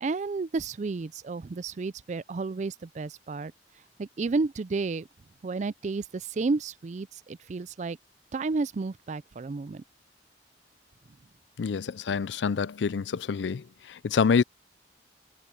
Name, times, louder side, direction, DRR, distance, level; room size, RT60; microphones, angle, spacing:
voice 1, 0.0-3.5 4.0-5.1 5.4-8.0 8.3-9.8, right 3 dB, 40° right, 0.4 m, -31 dB
voice 2, 11.6-13.6 13.9-14.4, left 6 dB, 85° left, 0.4 m, -26 dB
head